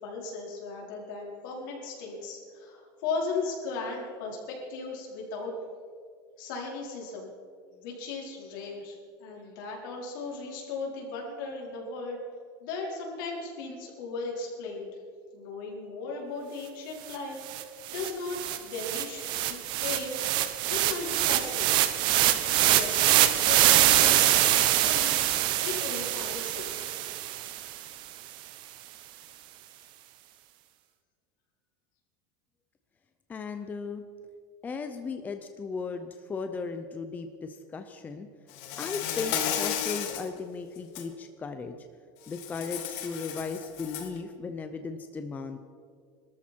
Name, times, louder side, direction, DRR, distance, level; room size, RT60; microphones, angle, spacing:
voice 1, 0.0-5.5 6.4-7.3 7.7-12.2 12.6-15.0 15.3-20.2 20.7-21.9 22.7-25.1 25.6-26.9, left 4 dB, 75° left, -2 dB, 4.8 m, -37 dB
sound 1, 17.1-17.2 17.5-27.8, right 13 dB, 45° right, 1.0 m, -24 dB
voice 2, 33.3-34.0 34.6-38.3 38.8-41.8 42.3-45.6, left 4 dB, 15° left, 7 dB, 0.7 m, -36 dB
Insect, 38.5-40.3 40.8-41.0 42.3-44.2, left 9 dB, 60° left, 1.8 m, -33 dB
22.0 x 13.5 x 4.6 m, 2.1 s
cardioid pair, 165°, 11 cm